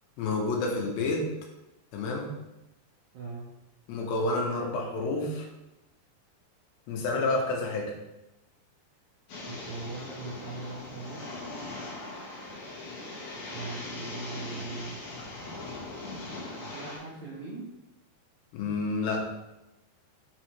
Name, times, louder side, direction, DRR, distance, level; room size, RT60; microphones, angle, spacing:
voice 1, 0.2-1.3 1.9-2.3 3.9-5.4 6.9-7.9 18.5-19.3, left 2 dB, 85° left, -1 dB, 3.1 m, -29 dB
voice 2, 3.1-3.6 9.4-11.5 13.5-15.0 16.6-17.7, right 4 dB, 90° right, -7 dB, 1.5 m, -40 dB
sound 1, 9.3-17.0, left 2 dB, 60° left, 2.1 m, -40 dB
6.2 x 5.3 x 3.1 m, 0.96 s
omnidirectional pair, 5.0 m